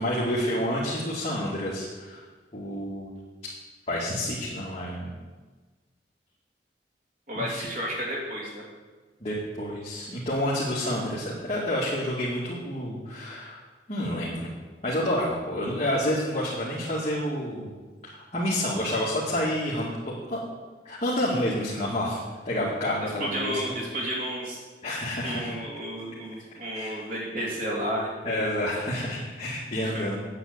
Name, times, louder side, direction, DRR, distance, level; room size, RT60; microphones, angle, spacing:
voice 1, 0.0-2.2 2.5-3.1 3.9-5.1 7.4-7.6 9.2-14.5 14.8-17.7 18.0-20.4 20.8-22.2 22.4-23.6 24.8-25.5 26.7-27.0 28.2-30.2, left 1 dB, 35° left, -7 dB, 2.2 m, -29 dB
voice 2, 7.3-8.6 23.0-24.6 25.2-28.7 29.8-30.1, equal, 50° right, -4 dB, 2.9 m, -32 dB
9.7 x 8.2 x 8.2 m, 1.3 s
head